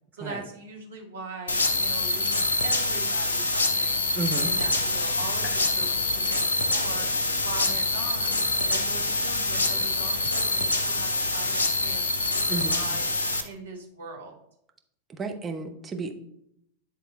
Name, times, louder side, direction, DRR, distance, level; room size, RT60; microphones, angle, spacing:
voice 1, 0.1-4.0 4.4-7.1 7.4-8.4 8.7-13.1 13.4-14.4, right 3 dB, 70° right, 1 dB, 1.8 m, -41 dB
sound 1, 1.5-13.4, left 2 dB, 70° left, 0.9 m, -25 dB
voice 2, 4.1-4.5 12.5-12.8 15.1-16.1, right 3 dB, 20° right, 3 dB, 1.0 m, -32 dB
sound 2, 4.2-10.3, left 1 dB, 35° left, 1.9 m, -45 dB
9.9 x 3.6 x 4.3 m, 0.74 s
figure-of-eight pair, 90°, 0 cm